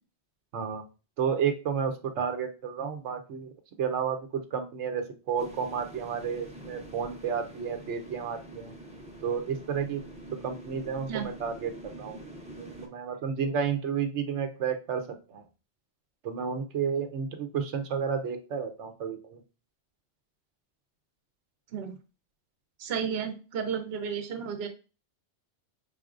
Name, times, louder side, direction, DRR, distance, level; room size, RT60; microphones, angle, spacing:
voice 1, 1.2-3.5 3.8-4.2 4.5-8.7 9.2-10.0 10.4-11.7 12.0-12.2 12.6-15.0 15.3-15.4 16.2-19.4, right 7 dB, 90° right, 6 dB, 1.0 m, -31 dB
sound 1, 5.4-12.9, right 1 dB, 5° right, 0.6 m, -46 dB
voice 2, 22.8-24.7, right 7 dB, 65° right, 7 dB, 1.0 m, -32 dB
4.9 x 3.8 x 2.4 m, 0.32 s
omnidirectional pair, 1.2 m